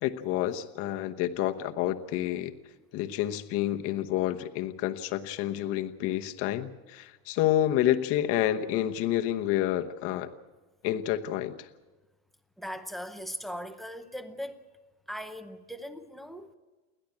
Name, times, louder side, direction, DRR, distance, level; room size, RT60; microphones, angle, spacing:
voice 1, 0.0-2.5 2.9-10.3 10.8-11.7, left 12 dB, 30° left, 6 dB, 1.0 m, -29 dB
voice 2, 12.6-14.6 15.1-16.5, equal, ahead, 10 dB, 0.7 m, -39 dB
29.0 x 11.0 x 8.6 m, 1.2 s
supercardioid pair, 155°, 43 cm